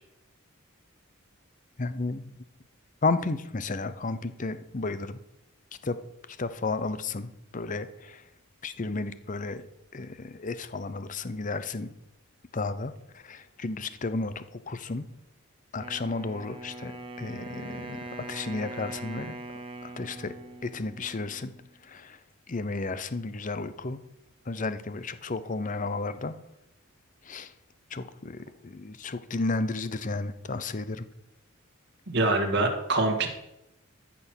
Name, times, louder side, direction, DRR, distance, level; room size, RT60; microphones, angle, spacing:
voice 1, 1.8-2.3 3.0-5.2 5.8-6.0 6.4-8.2 8.6-9.6 9.9-11.9 12.5-15.0 15.7-19.3 19.8-20.3 20.6-21.5 21.8-22.2 22.5-24.0 24.5-26.4 27.2-27.5 27.9-31.0, left 3 dB, 40° left, 13 dB, 0.7 m, -33 dB
Wind instrument woodwind instrument, 15.8-21.7, right 2 dB, 25° right, 1.2 m, -42 dB
voice 2, 32.1-33.3, right 2 dB, 55° right, 4 dB, 1.8 m, -24 dB
14.5 x 6.1 x 6.2 m, 0.86 s
head